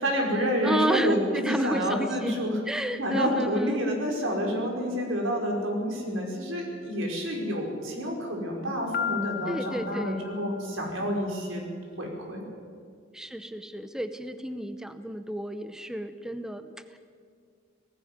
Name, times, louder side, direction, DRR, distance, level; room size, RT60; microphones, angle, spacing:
voice 1, 0.0-11.7 12.0-12.4, equal, 85° right, 0 dB, 5.0 m, -29 dB
voice 2, 0.6-3.8 9.5-10.3 13.1-17.0, right 1 dB, 5° right, 10 dB, 0.7 m, -31 dB
Piano, 8.9-10.8, left 8 dB, 50° left, 0.6 m, -34 dB
18.5 x 15.5 x 9.4 m, 2.2 s
head